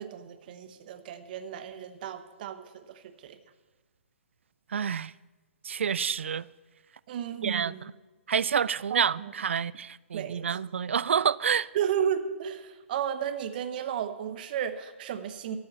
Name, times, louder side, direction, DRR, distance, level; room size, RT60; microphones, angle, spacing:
voice 1, 0.0-3.4 7.1-7.9 8.9-9.3 10.1-10.4 11.7-15.6, right 9 dB, 45° right, 0.9 m, -33 dB
voice 2, 4.7-5.1 5.6-6.5 7.4-7.7 8.3-11.7, right 7 dB, 65° right, 0.3 m, -28 dB
13.0 x 5.5 x 8.0 m
figure-of-eight pair, 125°, 7 cm